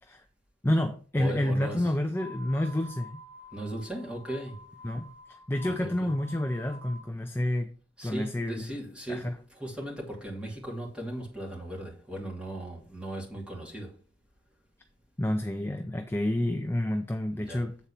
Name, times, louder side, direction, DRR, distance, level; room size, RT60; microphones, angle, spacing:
voice 1, 0.6-3.2 4.8-5.0 5.5-7.7 8.0-8.7 9.1-9.3 15.2-17.8, left 1 dB, 10° left, 0.5 m, -29 dB
voice 2, 1.1-1.9 3.5-4.7 5.6-6.1 8.0-14.0 17.3-17.7, right 1 dB, 5° right, 2.5 m, -38 dB
sound 1, 2.1-7.1, left 2 dB, 30° left, 1.8 m, -48 dB
8.2 x 4.3 x 5.7 m
head